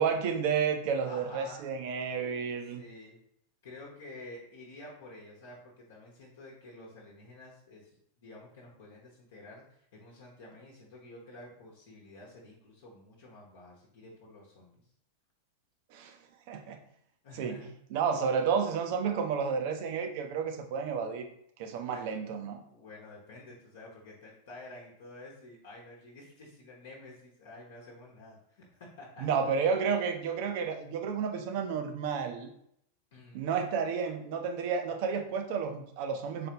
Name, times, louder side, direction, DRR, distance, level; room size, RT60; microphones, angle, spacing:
voice 1, 0.0-2.8 15.9-16.1 16.5-16.8 17.4-17.6 17.9-21.2 21.6-22.6 29.2-32.5 33.3-36.5, right 6 dB, 50° right, 6 dB, 0.5 m, -31 dB
voice 2, 1.1-1.6 2.7-3.2 3.6-14.8 17.2-17.7 21.7-22.1 22.7-29.3 33.1-33.4, left 2 dB, 55° left, -3 dB, 0.9 m, -50 dB
4.2 x 3.3 x 2.9 m, 0.70 s
figure-of-eight pair, 90°, 0 cm